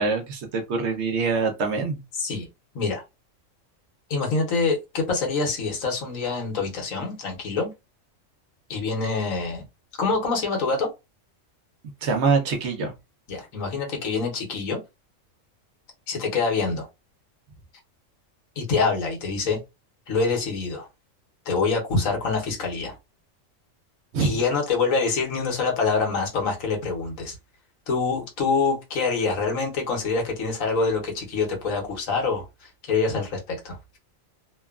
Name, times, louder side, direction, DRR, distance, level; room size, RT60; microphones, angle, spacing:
voice 1, 0.0-2.0 12.0-12.9 24.1-24.3, right 4 dB, 65° right, 0.9 m, -24 dB
voice 2, 4.1-7.7 8.7-9.6 10.0-10.9 13.3-14.8 16.1-16.9 18.6-19.6 20.1-20.9 21.5-23.0 24.2-27.3 27.9-33.8, left 4 dB, 85° left, 1.4 m, -25 dB
2.9 x 2.2 x 2.3 m
omnidirectional pair, 1.3 m